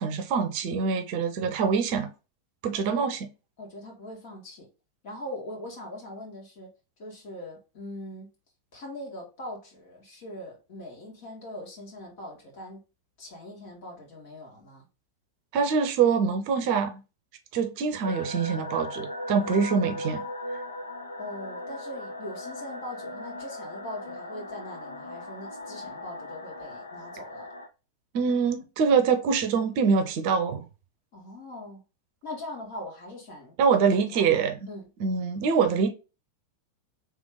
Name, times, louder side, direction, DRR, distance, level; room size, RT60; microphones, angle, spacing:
voice 1, 0.0-2.1 2.6-3.2 15.5-17.0 17.5-20.2 28.1-30.7 33.6-34.6 35.0-35.9, right 6 dB, 45° right, 0.7 m, -24 dB
voice 2, 2.7-3.0 3.6-4.7 5.0-6.7 7.0-8.3 8.7-12.8 13.2-14.9 21.2-27.5 31.1-31.8 32.2-34.4 34.7-34.9, left 1 dB, 45° left, 2.1 m, -41 dB
sound 1, 18.0-27.7, left 1 dB, 80° left, 0.6 m, -38 dB
3.5 x 3.2 x 3.6 m
figure-of-eight pair, 90°, 0 cm